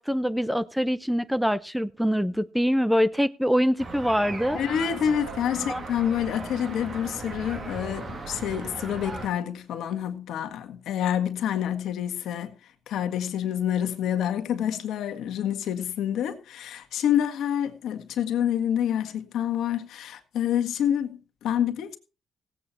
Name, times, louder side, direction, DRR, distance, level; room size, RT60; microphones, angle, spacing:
voice 1, 0.0-4.6 5.6-5.8, equal, ahead, 0.7 m, -24 dB
sound 1, 3.8-9.3, right 3 dB, 45° right, 2.9 m, -37 dB
voice 2, 4.5-12.5 12.9-22.0, left 9 dB, 80° left, 1.8 m, -27 dB
17.0 x 8.6 x 4.3 m
cardioid pair, 90°, 0 cm